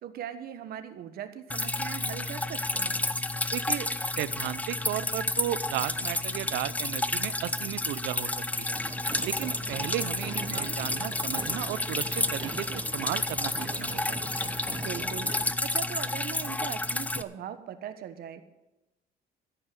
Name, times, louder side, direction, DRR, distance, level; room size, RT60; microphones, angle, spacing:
voice 1, 0.0-3.1 10.3-10.8 14.7-18.4, right 9 dB, 65° right, 10 dB, 1.3 m, -40 dB
Drip, 1.5-17.2, left 2 dB, 10° left, 0.6 m, -31 dB
voice 2, 3.5-3.9 4.2-8.3 8.6-8.8 9.2-14.2, right 14 dB, 85° right, 16 dB, 0.6 m, -34 dB
sound 1, 8.7-15.5, right 5 dB, 25° right, 0.7 m, -42 dB
14.0 x 5.5 x 9.5 m, 0.98 s
cardioid pair, 110°, 17 cm